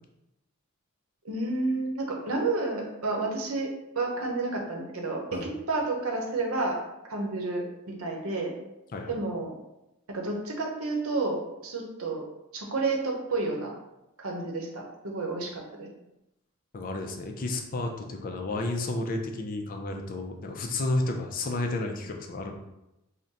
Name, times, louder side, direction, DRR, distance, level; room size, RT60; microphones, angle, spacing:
voice 1, 1.2-3.7 4.0-6.8 7.0-8.5 9.1-9.6 10.1-12.3 12.5-13.7 14.2-15.9, right 3 dB, 85° right, 0 dB, 0.8 m, -30 dB
voice 2, 16.7-22.5, left 2 dB, 40° left, 3 dB, 0.4 m, -31 dB
3.7 x 2.1 x 4.0 m, 0.90 s
head